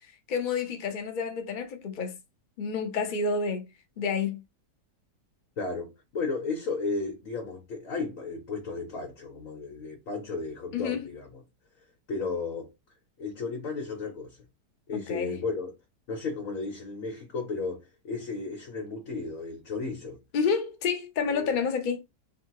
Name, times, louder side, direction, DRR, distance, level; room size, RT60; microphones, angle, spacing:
voice 1, 0.3-2.1 2.6-3.6 4.0-4.4 10.7-11.0 15.1-15.3 20.3-22.0, left 5 dB, 80° left, 0.4 m, -29 dB
voice 2, 5.6-11.4 12.1-12.7 13.2-14.4 14.9-15.7 16.1-20.2 21.3-21.6, left 4 dB, 55° left, 1.3 m, -34 dB
3.7 x 2.3 x 4.5 m
omnidirectional pair, 1.8 m